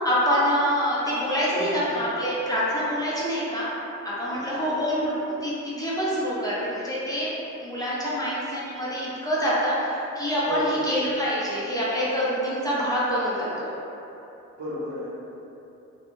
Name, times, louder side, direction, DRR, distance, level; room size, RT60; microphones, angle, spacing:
voice 1, 0.0-3.6 4.0-6.6 6.8-13.7, equal, 15° left, -8 dB, 0.5 m, -26 dB
voice 2, 4.3-4.7 10.5-10.8 14.6-15.1, equal, 65° right, -9 dB, 0.8 m, -34 dB
2.5 x 2.1 x 3.0 m, 2.9 s
wide cardioid pair, 130°, 30 cm